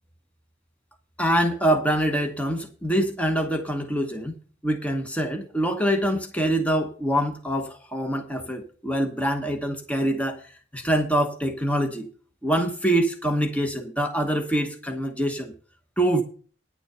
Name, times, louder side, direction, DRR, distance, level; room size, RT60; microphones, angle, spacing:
voice 1, 1.2-4.4 4.6-10.5 10.7-12.1 12.4-15.5 16.0-16.2, right 1 dB, 10° left, 4 dB, 1.0 m, -25 dB
9.9 x 6.9 x 6.7 m, 0.41 s
head